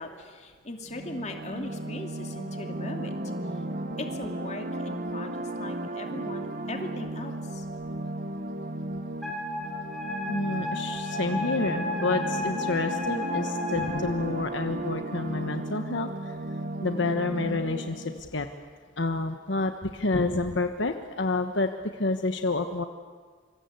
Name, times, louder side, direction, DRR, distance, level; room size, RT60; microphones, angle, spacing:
voice 1, 0.0-3.1 4.0-7.7, left 2 dB, 35° left, 3 dB, 2.7 m, -39 dB
sound 1, 0.9-18.2, right 1 dB, 45° right, 1.3 m, -35 dB
Wind instrument woodwind instrument, 9.2-13.9, left 2 dB, ahead, 4.9 m, -33 dB
voice 2, 10.3-16.3 16.8-18.5 19.0-22.8, left 3 dB, 70° left, 7 dB, 1.2 m, -29 dB
26.5 x 25.5 x 8.2 m, 1.5 s
head